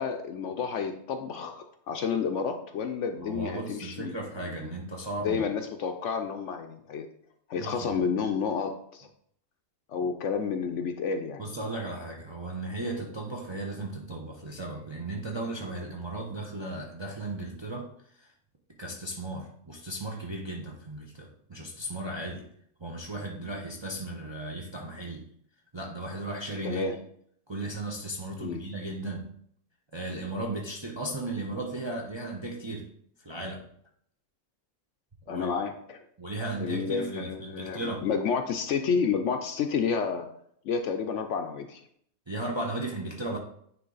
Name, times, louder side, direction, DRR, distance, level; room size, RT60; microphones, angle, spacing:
voice 1, 0.0-4.1 4.4-4.7 5.2-7.1 7.5-9.1 9.9-11.4 26.6-27.0 28.4-28.6 35.3-36.0 36.6-40.3 40.6-41.8, left 6 dB, 65° left, 6 dB, 0.8 m, -30 dB
voice 2, 3.2-5.4 7.6-8.1 11.4-18.3 18.8-22.5 22.8-25.3 25.7-26.9 27.5-29.3 29.9-32.9 33.2-33.6 35.3-35.6 36.2-38.0 42.3-43.4, right 2 dB, 30° right, -1 dB, 0.5 m, -36 dB
9.2 x 3.2 x 3.9 m, 0.67 s
omnidirectional pair, 1.5 m